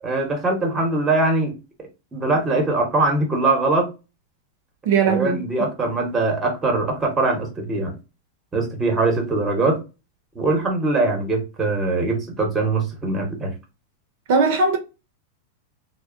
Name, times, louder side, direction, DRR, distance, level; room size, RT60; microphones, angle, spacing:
voice 1, 0.0-1.5 2.1-3.9 5.1-7.9 8.5-9.8 10.3-13.5, right 2 dB, 15° right, 0.9 m, -22 dB
voice 2, 4.9-5.4 14.3-14.8, right 4 dB, 60° right, 0.6 m, -18 dB
2.7 x 2.0 x 2.4 m
supercardioid pair, 145°, 0 cm